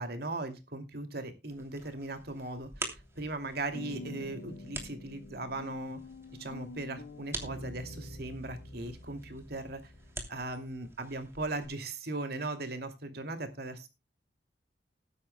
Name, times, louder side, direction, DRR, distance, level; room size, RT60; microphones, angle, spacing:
voice 1, 0.0-6.0 6.4-9.9 10.3-13.9, right 2 dB, 60° right, 7 dB, 2.5 m, -38 dB
sound 1, 1.5-11.7, right 2 dB, 15° right, 2.9 m, -47 dB
sound 2, 2.7-3.3 3.7-10.7, left 1 dB, 55° left, 2.1 m, -47 dB
20.0 x 9.8 x 2.2 m, 0.27 s
head